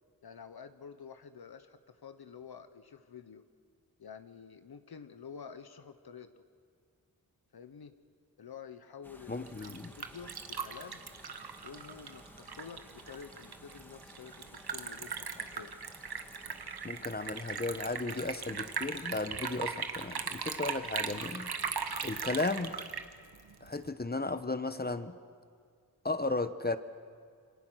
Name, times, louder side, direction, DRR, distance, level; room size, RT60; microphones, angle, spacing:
voice 1, 0.2-3.4 4.0-6.3 7.5-7.9 8.4-9.6 10.0-11.0 11.6-15.7, left 6 dB, 80° left, 10 dB, 1.0 m, -49 dB
sound 1, 9.0-21.4, equal, 5° left, 2.1 m, -56 dB
voice 2, 9.3-9.9 16.8-21.5 22.0-22.7 23.6-25.2 26.0-26.8, left 2 dB, 25° left, 11 dB, 1.0 m, -35 dB
Liquid, 9.3-23.9, right 6 dB, 85° right, 1.3 m, -39 dB
27.5 x 24.5 x 6.3 m, 2.2 s
wide cardioid pair, 70°, 37 cm